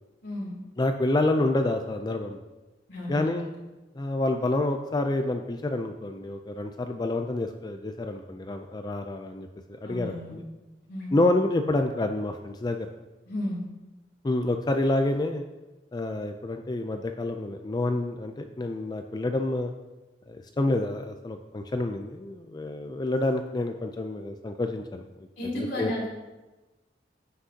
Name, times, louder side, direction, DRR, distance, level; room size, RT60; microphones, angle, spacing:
voice 1, 0.2-0.5 2.9-3.5 9.8-10.4 10.9-11.2 13.3-13.6 25.4-26.1, left 1 dB, 75° left, -5 dB, 2.7 m, -33 dB
voice 2, 0.8-2.4 3.1-3.5 4.0-9.5 9.8-10.4 11.1-12.9 14.2-15.4 15.9-19.7 20.3-25.0 25.5-25.9, left 2 dB, 25° left, 6 dB, 0.4 m, -28 dB
14.5 x 6.2 x 2.8 m, 1.1 s
head